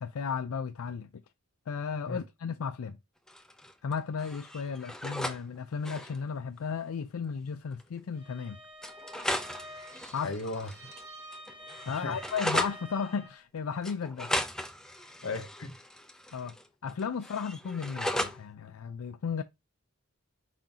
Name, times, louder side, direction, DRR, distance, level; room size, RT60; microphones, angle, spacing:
voice 1, 0.0-1.2 1.7-3.0 3.8-8.6 10.1-10.4 11.9-14.3 15.0-15.1 16.3-16.6 16.8-19.4, left 6 dB, 80° left, 0.4 m, -34 dB
sound 1, 3.3-5.4 5.7-6.2 7.3-7.4 7.7-7.8 8.8-11.0 11.3-12.8 13.8-16.6 16.9-18.4, left 1 dB, 5° left, 0.5 m, -36 dB
Bowed string instrument, 8.1-13.4, equal, 20° right, 1.8 m, -48 dB
voice 2, 10.2-10.7 11.9-12.2 15.2-15.8, left 3 dB, 65° left, 0.9 m, -36 dB
5.0 x 3.7 x 2.8 m
head